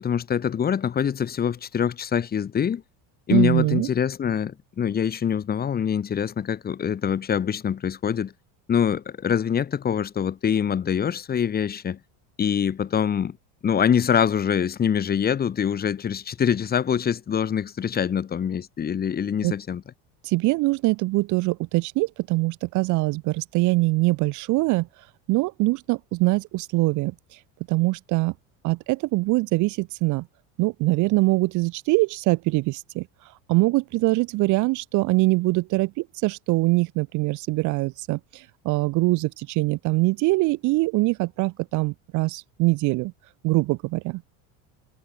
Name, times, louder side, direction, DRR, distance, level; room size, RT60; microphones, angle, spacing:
voice 1, 0.0-2.8 3.3-8.3 8.7-12.0 12.4-13.4 13.6-19.8, left 8 dB, 25° left, 2.6 m, -24 dB
voice 2, 3.3-3.9 19.4-19.5 20.2-24.9 25.3-27.1 27.7-28.3 28.6-30.3 30.6-33.1 33.5-43.1 43.4-44.2, right 22 dB, 55° right, 1.1 m, -23 dB
cardioid pair, 150°, 37 cm